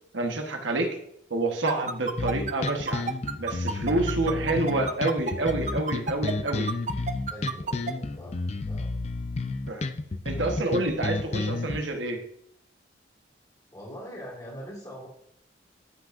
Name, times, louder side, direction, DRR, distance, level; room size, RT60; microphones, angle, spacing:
voice 1, 0.1-1.0 1.3-3.0 3.4-6.7 9.7-9.8 10.2-12.2, right 2 dB, 85° right, 4 dB, 1.3 m, -28 dB
sound 1, 1.7-7.9, right 5 dB, 40° right, 0.5 m, -30 dB
sound 2, 2.2-11.8, left 3 dB, 35° left, 0.5 m, -31 dB
voice 2, 7.3-8.4 8.7-8.9 13.7-15.1, equal, 20° left, -3 dB, 2.4 m, -42 dB
13.5 x 5.9 x 2.6 m, 0.71 s
head